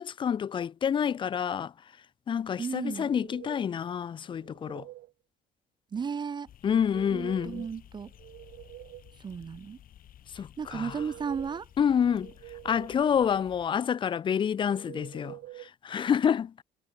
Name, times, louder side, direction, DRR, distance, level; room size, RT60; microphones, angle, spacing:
voice 1, 0.0-1.7 2.3-4.9 6.6-7.7 10.3-11.0 11.8-12.3 12.6-16.5, left 8 dB, 30° left, 0.4 m, -28 dB
voice 2, 2.6-3.1 5.9-6.5 7.1-8.1 9.2-9.8 10.6-11.7, right 6 dB, 25° right, 0.5 m, -34 dB
sound 1, 2.9-3.8 4.3-5.1 6.7-7.7 8.1-9.2 10.6-11.6 12.1-13.1 14.6-15.7, right 16 dB, 75° right, 1.3 m, -47 dB
sound 2, 6.5-13.7, left 11 dB, 60° left, 2.8 m, -54 dB
cardioid pair, 110°, 17 cm